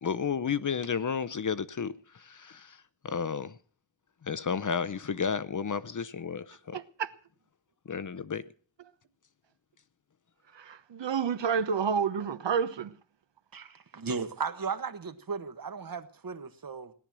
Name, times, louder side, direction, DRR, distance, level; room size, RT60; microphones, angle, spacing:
voice 1, 0.0-3.6 4.2-6.8 7.9-8.5, left 6 dB, 40° left, 0.7 m, -32 dB
voice 2, 6.7-7.1 10.5-12.9, right 6 dB, 65° right, 1.2 m, -29 dB
voice 3, 13.5-16.9, right 5 dB, 45° right, 1.4 m, -36 dB
17.5 x 12.0 x 6.2 m
wide cardioid pair, 155°, 47 cm